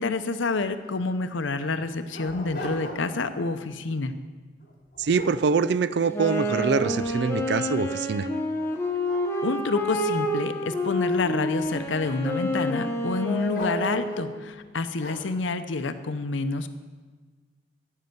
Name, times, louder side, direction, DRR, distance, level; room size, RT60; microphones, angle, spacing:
voice 1, 0.0-4.1 9.4-16.7, left 3 dB, 85° left, 10 dB, 0.7 m, -28 dB
Dog, 0.6-0.7 1.0-1.1 1.7-3.3 3.7-4.0 4.6-6.1 6.5-7.5 8.0-8.1 8.6-10.9 11.6-12.2 13.5-14.3 15.0-15.4, left 1 dB, 50° left, 2.6 m, -41 dB
voice 2, 5.0-8.3, right 5 dB, 60° right, 15 dB, 0.4 m, -24 dB
Wind instrument woodwind instrument, 6.1-14.4, equal, 15° left, 1.0 m, -28 dB
14.5 x 5.6 x 7.9 m, 1.4 s
head